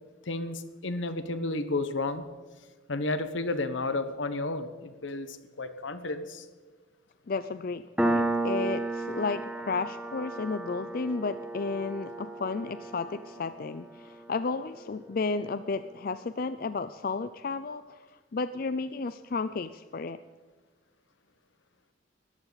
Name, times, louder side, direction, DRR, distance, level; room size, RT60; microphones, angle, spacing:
voice 1, 0.3-2.3 2.9-6.4, left 2 dB, 75° left, 10 dB, 1.2 m, -32 dB
voice 2, 7.3-20.2, left 4 dB, 50° left, 12 dB, 0.4 m, -33 dB
Piano, 8.0-15.2, right 2 dB, 5° right, 1.0 m, -33 dB
20.0 x 14.5 x 4.1 m, 1.4 s
head